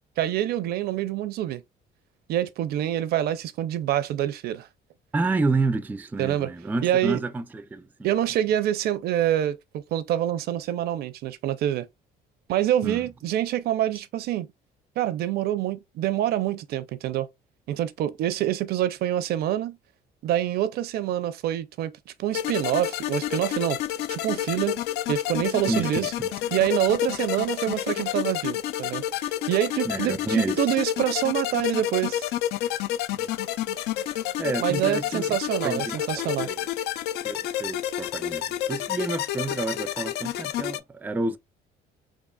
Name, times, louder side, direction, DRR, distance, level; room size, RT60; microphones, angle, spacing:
voice 1, 0.2-1.6 2.3-4.7 6.2-6.5 6.8-7.2 8.0-11.9 12.5-14.5 15.0-17.3 17.7-19.8 20.2-23.8 24.1-24.8 25.1-26.1 26.5-32.3 34.6-36.5, right 12 dB, 65° right, 0.5 m, -26 dB
voice 2, 5.1-8.1 12.8-13.1 25.7-26.3 29.8-30.6 33.1-33.3 34.4-35.4 35.6-36.7 37.2-41.4, right 3 dB, 10° right, 0.3 m, -29 dB
sound 1, 22.3-40.8, left 12 dB, 75° left, 0.4 m, -29 dB
3.7 x 3.6 x 2.2 m
cardioid pair, 110°, 17 cm